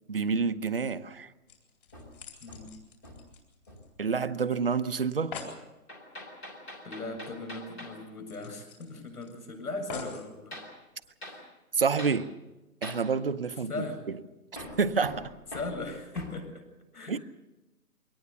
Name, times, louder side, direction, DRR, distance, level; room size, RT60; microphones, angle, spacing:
voice 1, 0.1-1.3 4.0-5.3 11.7-12.3 12.8-13.8 14.8-15.3 17.1-17.2, right 5 dB, 40° right, 12 dB, 0.7 m, -28 dB
sound 1, 1.5-4.1 4.4-4.5 4.8-4.9 5.1-5.6 7.1-7.2 7.6-7.7 8.3-9.3 9.9-10.3 11.0-11.1, left 4 dB, 35° left, 4.1 m, -44 dB
Hammer, 1.9-3.4 3.7-4.0 5.9-8.0 10.5-10.8 11.2-11.4 12.0-12.2 12.8-13.1 14.6-16.4, left 1 dB, 10° left, 1.4 m, -44 dB
voice 2, 2.4-2.7 6.8-10.6 11.2-11.6 13.7-14.1 15.5-16.6 16.9-17.2, left 2 dB, 75° left, 5 dB, 7.1 m, -38 dB
23.5 x 18.5 x 7.0 m, 1.0 s
hypercardioid pair, 175°, 46 cm